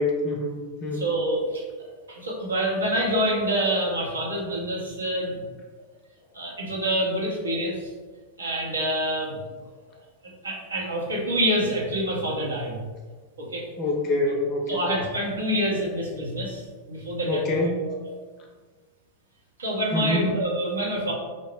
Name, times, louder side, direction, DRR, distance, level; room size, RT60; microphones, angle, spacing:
voice 1, 0.0-1.0 13.8-14.8 17.3-17.8 19.9-20.3, left 1 dB, 35° left, 0 dB, 0.5 m, -25 dB
voice 2, 0.9-1.6 2.1-5.4 6.3-7.8 8.4-9.4 10.4-12.8 13.4-13.7 14.7-17.4 19.6-21.1, equal, 75° right, -3 dB, 0.7 m, -26 dB
2.6 x 2.1 x 3.3 m, 1.4 s
figure-of-eight pair, 90°, 0 cm